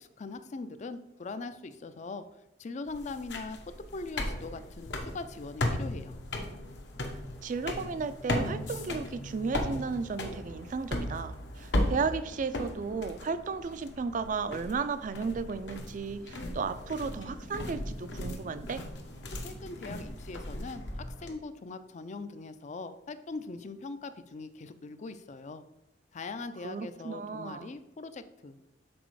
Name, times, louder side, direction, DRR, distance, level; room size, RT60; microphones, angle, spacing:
voice 1, 0.0-2.3 2.6-3.6 3.9-6.2 19.4-25.6 26.1-28.7, left 3 dB, 40° left, 11 dB, 0.4 m, -41 dB
sound 1, 2.9-21.3, left 1 dB, 70° left, 1.0 m, -37 dB
voice 2, 7.4-18.8 26.6-27.7, right 5 dB, 45° right, 13 dB, 0.4 m, -34 dB
6.1 x 4.1 x 4.7 m, 0.88 s
head